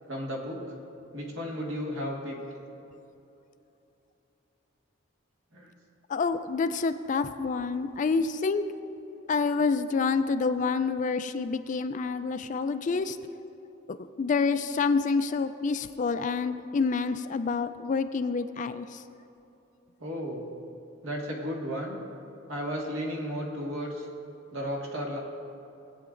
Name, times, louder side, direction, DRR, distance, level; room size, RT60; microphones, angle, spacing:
voice 1, 0.1-0.6 1.1-2.4 5.5-5.7 20.0-20.5 21.0-22.0 22.5-24.1 24.5-25.2, equal, 70° right, -2 dB, 1.8 m, -34 dB
voice 2, 6.1-8.6 9.3-13.2 13.9-19.0, left 4 dB, 40° left, 10 dB, 0.3 m, -28 dB
18.5 x 8.6 x 2.5 m, 2.9 s
head